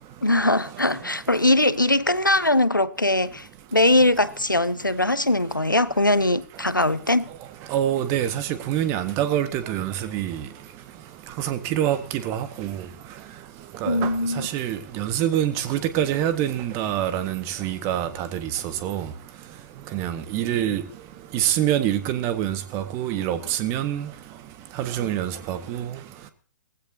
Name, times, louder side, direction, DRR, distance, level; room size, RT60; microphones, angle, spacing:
voice 1, 0.2-7.3 13.9-14.5, left 1 dB, 90° left, 0.8 m, -21 dB
voice 2, 7.7-10.4 11.4-12.8 13.8-14.1 14.4-18.5 18.8-19.1 19.9-20.8 21.3-24.1 24.8-25.9, right 11 dB, 25° right, 1.6 m, -25 dB
19.5 x 15.5 x 2.8 m
figure-of-eight pair, 120°, 10 cm